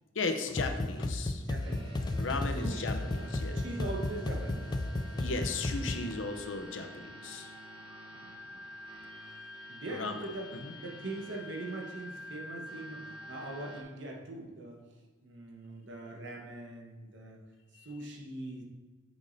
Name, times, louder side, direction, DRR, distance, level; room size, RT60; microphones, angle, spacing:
voice 1, 0.1-1.4 2.2-3.6 5.1-7.5 9.9-10.2 10.6-10.7, left 3 dB, 80° left, 6 dB, 0.7 m, -36 dB
sound 1, 0.6-6.1, left 2 dB, 20° left, 0.3 m, -34 dB
voice 2, 1.4-2.2 2.5-2.8 3.1-4.7 8.1-8.6 9.7-10.5 10.8-14.8 15.2-17.4 17.8-18.6, right 2 dB, 70° right, 0 dB, 1.2 m, -42 dB
sound 2, 1.6-13.8, left 1 dB, 25° right, 1.1 m, -48 dB
8.2 x 6.3 x 2.7 m, 1.4 s
head